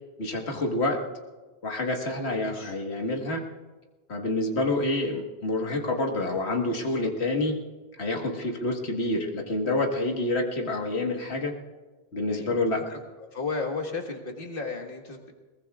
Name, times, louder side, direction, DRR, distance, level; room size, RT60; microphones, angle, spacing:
voice 1, 0.2-1.0 1.6-3.4 4.1-7.5 8.0-11.5 12.1-12.8, left 2 dB, 85° left, 2 dB, 1.9 m, -27 dB
voice 2, 2.4-2.7 6.8-7.1 8.1-8.6 12.3-15.3, left 4 dB, 55° left, 2 dB, 1.8 m, -35 dB
21.5 x 19.5 x 2.4 m, 1.3 s
omnidirectional pair, 1.1 m